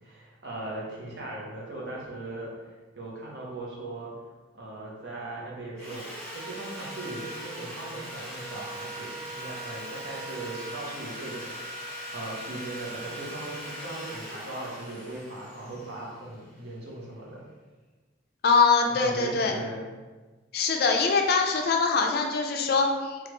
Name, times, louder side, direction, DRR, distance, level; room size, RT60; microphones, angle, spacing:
voice 1, 0.0-2.7 3.0-4.1 4.5-6.0 6.3-11.7 12.1-17.5 18.9-19.9, right 2 dB, 65° right, -4 dB, 0.8 m, -39 dB
Sawing, 5.8-16.8, right 1 dB, 5° left, 1.0 m, -40 dB
voice 2, 18.4-19.5 20.5-23.2, left 4 dB, 55° left, 3 dB, 0.3 m, -23 dB
3.1 x 2.4 x 3.0 m, 1.3 s
head